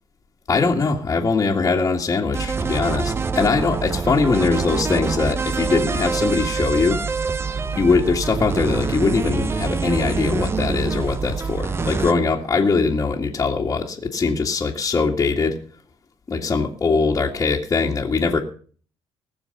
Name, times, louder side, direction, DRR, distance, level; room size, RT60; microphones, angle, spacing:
voice 1, 0.5-7.0 7.7-15.6 16.3-18.4, left 4 dB, 30° left, -4 dB, 2.1 m, -21 dB
sound 1, 2.3-12.1, right 4 dB, 25° right, 0.8 m, -25 dB
20.0 x 7.0 x 6.7 m, 0.43 s
cardioid pair, 115°, 10 cm